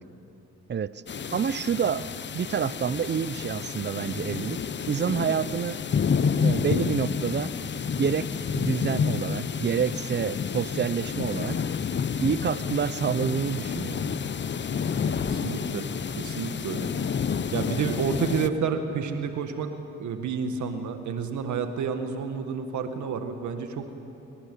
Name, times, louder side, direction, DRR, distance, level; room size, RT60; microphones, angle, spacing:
voice 1, 0.7-1.0 1.3-2.1 2.3-4.6 4.9-5.8 6.4-7.5 8.0-11.6 12.2-14.3, right 7 dB, 35° right, 17 dB, 0.7 m, -28 dB
sound 1, 1.1-18.5, left 6 dB, 35° left, 0.9 m, -29 dB
voice 2, 15.1-15.9 16.2-16.9 17.5-19.7 20.0-23.9, right 6 dB, 70° right, 7 dB, 1.9 m, -30 dB
24.5 x 21.5 x 8.5 m, 2.8 s
cardioid pair, 90°, 30 cm